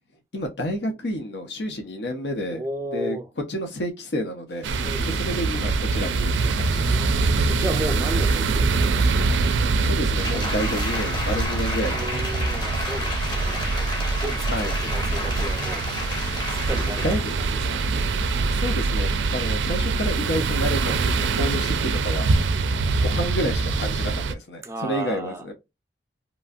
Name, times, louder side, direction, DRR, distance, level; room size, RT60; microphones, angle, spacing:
voice 1, 0.3-2.6 2.9-3.2 3.5-4.7 5.0-7.1 9.8-12.5 14.5-14.8 17.0-17.4 18.5-22.3 23.0-25.5, equal, 75° left, 0.7 m, -30 dB
voice 2, 2.5-3.3 4.8-5.5 6.7-9.3 11.9-13.7 14.2-15.9 16.5-17.8 24.6-25.5, right 1 dB, 15° right, 0.4 m, -34 dB
sound 1, 4.5-18.6, left 2 dB, 60° left, 1.0 m, -47 dB
sound 2, 4.6-24.3, right 3 dB, 90° right, 0.4 m, -24 dB
Applause, 10.2-17.3 17.8-17.9, left 2 dB, 25° left, 0.7 m, -32 dB
3.0 x 2.5 x 2.3 m
head